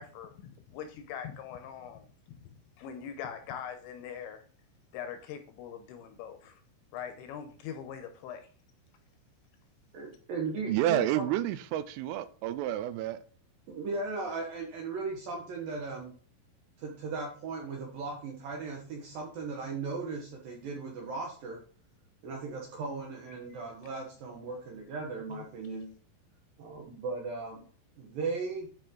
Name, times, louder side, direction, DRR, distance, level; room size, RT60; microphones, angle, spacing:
voice 1, 0.0-2.1 2.8-4.4 4.9-6.6 6.9-8.5 23.5-23.6 25.3-25.4, left 8 dB, 75° left, 2.8 m, -42 dB
voice 2, 9.9-11.2 13.7-16.1 16.8-21.6 22.2-25.9 26.6-27.6 28.0-28.7, right 4 dB, 70° right, 2.2 m, -37 dB
voice 3, 10.7-13.2, right 12 dB, 85° right, 3.1 m, -30 dB
10.0 x 5.1 x 3.8 m
omnidirectional pair, 5.8 m